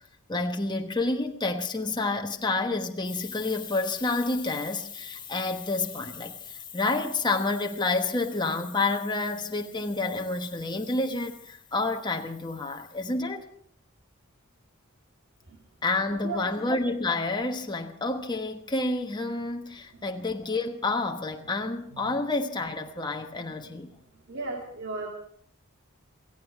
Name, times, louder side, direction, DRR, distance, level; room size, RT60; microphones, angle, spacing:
voice 1, 0.3-13.4 15.8-23.9, left 3 dB, 20° left, 1.3 m, -29 dB
voice 2, 24.3-25.1, right 3 dB, 60° right, 2.3 m, -35 dB
17.5 x 15.5 x 4.7 m
head